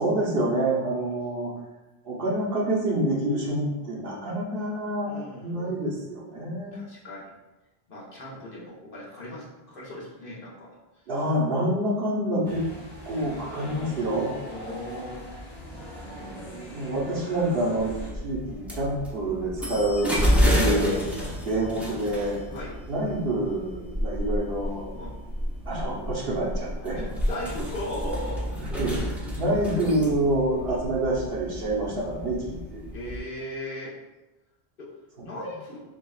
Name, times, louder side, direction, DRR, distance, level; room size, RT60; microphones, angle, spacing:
voice 1, 0.0-1.5 2.0-6.8 11.1-12.6 13.0-14.4 16.0-18.0 18.2-21.0 21.4-22.4 22.9-24.9 25.7-27.1 28.8-29.0 29.4-32.8, right 1 dB, 65° right, -4 dB, 1.1 m, -27 dB
voice 2, 5.1-5.6 6.7-7.3 7.9-10.8 14.5-15.3 16.3-16.5 22.5-22.7 24.9-25.1 26.9-29.1 30.7-30.8 32.9-33.9 34.8-34.9 35.2-35.8, left 1 dB, 60° left, -5 dB, 1.1 m, -38 dB
sound 1, 12.4-18.1, equal, 85° left, 1.5 m, -41 dB
sound 2, 17.8-33.2, equal, ahead, 0.6 m, -30 dB
6.3 x 2.4 x 2.3 m, 1.1 s
omnidirectional pair, 1.0 m